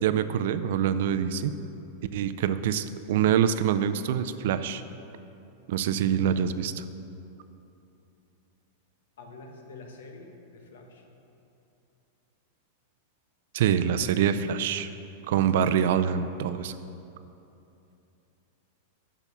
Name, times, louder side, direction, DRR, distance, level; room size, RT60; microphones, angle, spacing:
voice 1, 0.0-1.5 2.1-4.8 5.7-6.8 13.5-14.9 15.3-16.7, right 9 dB, 60° right, 11 dB, 0.4 m, -25 dB
voice 2, 9.2-11.0, left 3 dB, 85° left, 2 dB, 1.2 m, -46 dB
7.0 x 5.8 x 6.8 m, 2.8 s
supercardioid pair, 165°, 0 cm